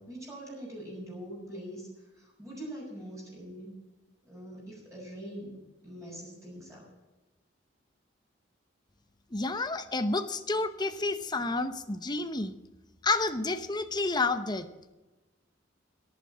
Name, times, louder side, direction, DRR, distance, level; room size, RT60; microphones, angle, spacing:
voice 1, 0.0-3.7 4.2-5.5 5.8-6.9, right 1 dB, 15° right, -4 dB, 6.2 m, -43 dB
voice 2, 9.3-12.5 13.0-14.7, left 3 dB, 25° left, 9 dB, 0.8 m, -30 dB
11.5 x 11.0 x 7.4 m, 1.1 s
head